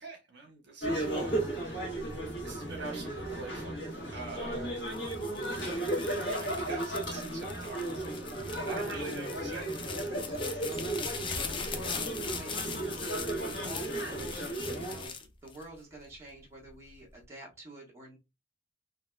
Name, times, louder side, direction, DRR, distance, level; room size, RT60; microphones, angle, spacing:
voice 1, 0.0-1.3 2.4-3.8 4.0-4.8 5.5-5.8 6.4-9.7, right 4 dB, 60° right, 1.1 m, -45 dB
sound 1, 0.8-15.1, right 1 dB, 70° left, 1.7 m, -35 dB
sound 2, 4.8-16.1 16.7-17.2, left 5 dB, 25° left, 0.5 m, -41 dB
voice 2, 8.6-9.1 10.4-15.1 15.4-18.2, right 1 dB, 15° right, 1.3 m, -49 dB
3.8 x 2.8 x 2.3 m
head